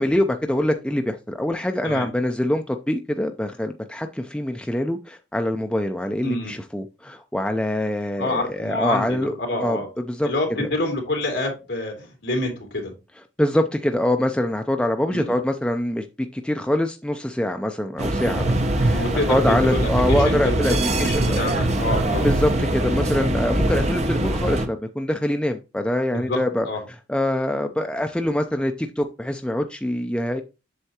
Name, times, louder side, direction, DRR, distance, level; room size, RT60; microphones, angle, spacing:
voice 1, 0.0-10.3 10.6-10.7 13.2-16.1 16.3-30.4, left 1 dB, 5° left, 0.4 m, -24 dB
voice 2, 8.2-9.9 10.2-12.9 15.1-15.3 18.9-22.3 26.1-26.4 26.6-26.8, left 2 dB, 60° left, 3.0 m, -27 dB
sound 1, 18.0-24.7, right 1 dB, 35° right, 0.8 m, -22 dB
8.0 x 6.7 x 2.8 m
head